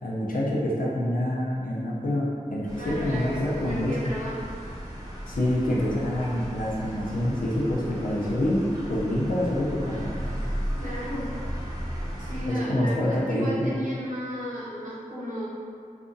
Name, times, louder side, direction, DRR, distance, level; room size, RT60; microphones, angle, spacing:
voice 1, 0.0-2.2 2.5-4.1 5.3-8.6 8.9-10.1 12.5-13.7, left 1 dB, 80° left, -5 dB, 0.6 m, -26 dB
sound 1, 2.7-12.5, equal, 25° right, 0.7 m, -35 dB
voice 2, 2.8-4.5 10.7-11.3 12.2-15.5, equal, 65° right, -8 dB, 0.9 m, -34 dB
2.7 x 2.4 x 2.6 m, 2.3 s
wide cardioid pair, 60°, 14 cm